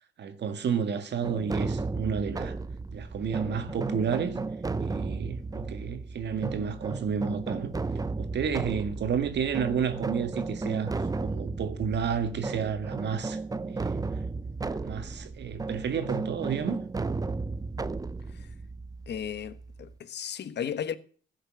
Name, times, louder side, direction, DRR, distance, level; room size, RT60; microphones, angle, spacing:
voice 1, 0.2-2.6 2.9-4.4 4.8-7.7 8.2-10.9 11.2-13.4 13.7-14.2 14.6-16.8, right 7 dB, 60° right, 1.9 m, -31 dB
sound 1, 1.2-19.9, right 3 dB, 20° right, 0.7 m, -34 dB
voice 2, 19.1-21.0, left 8 dB, 60° left, 1.4 m, -35 dB
15.5 x 6.6 x 8.9 m
cardioid pair, 90°, 20 cm